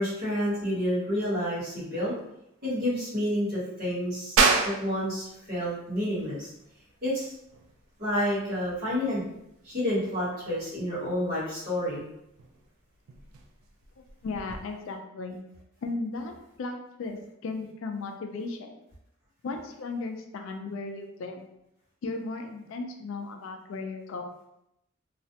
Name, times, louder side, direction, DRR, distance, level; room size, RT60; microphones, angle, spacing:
voice 1, 0.0-2.1 2.6-4.4 4.6-6.5 7.0-7.3 8.0-9.2 9.6-12.0, equal, 45° right, -8 dB, 1.1 m, -29 dB
sound 1, 4.4-14.6, right 5 dB, 75° right, 0.3 m, -32 dB
voice 2, 14.2-15.4 15.8-18.8 19.4-21.5 22.0-24.3, left 3 dB, 60° left, 5 dB, 0.3 m, -36 dB
2.4 x 2.0 x 2.7 m, 0.82 s
head